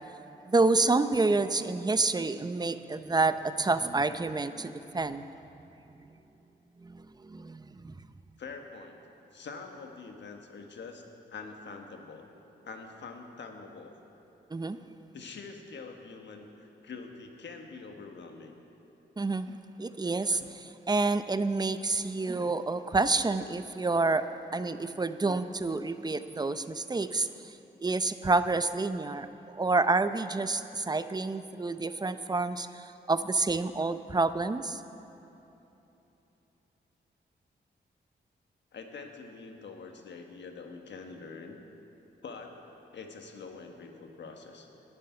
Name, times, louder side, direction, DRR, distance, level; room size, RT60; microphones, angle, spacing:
voice 1, 0.4-5.3 6.8-7.9 14.5-14.8 19.2-24.3 24.5-27.5 27.8-29.3 29.5-34.8, right 3 dB, 20° right, 11 dB, 0.6 m, -28 dB
voice 2, 8.4-9.0 9.3-11.0 11.3-12.3 12.6-13.9 15.1-18.5 38.7-41.6 42.2-44.7, left 4 dB, 75° left, 4 dB, 1.4 m, -45 dB
10.5 x 7.6 x 9.9 m, 3.0 s
cardioid pair, 55°, 19 cm